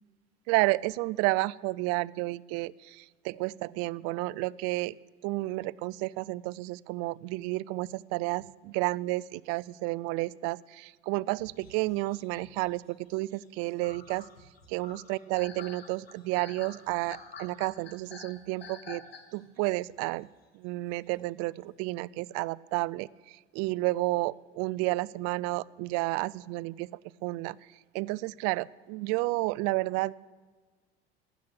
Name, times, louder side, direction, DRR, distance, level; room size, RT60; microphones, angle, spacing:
voice 1, 0.5-5.0 5.2-14.3 14.7-19.0 19.3-20.3 20.5-26.9 27.2-30.1, right 21 dB, 55° right, 22 dB, 0.4 m, -31 dB
sound 1, 11.4-19.6 19.9-20.2 20.9-21.0 21.4-21.6, left 5 dB, 90° left, 1.2 m, -49 dB
12.5 x 8.2 x 8.6 m, 1.4 s
hypercardioid pair, 65°, 29 cm